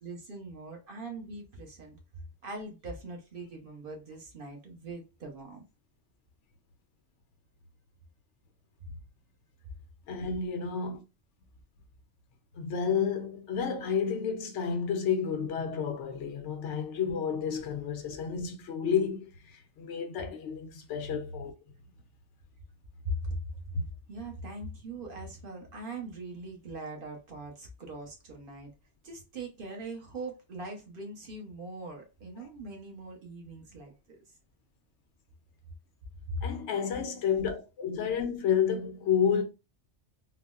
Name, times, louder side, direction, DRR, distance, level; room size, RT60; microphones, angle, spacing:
voice 1, 0.0-2.0 2.4-5.6 23.0-23.4 24.1-28.7 29.0-34.2 36.3-36.5, right 1 dB, 55° right, 1.0 m, -41 dB
voice 2, 10.1-11.0 12.5-21.5 23.7-23.8 36.4-39.4, left 7 dB, 90° left, 0.9 m, -30 dB
3.8 x 2.0 x 2.3 m
omnidirectional pair, 1.2 m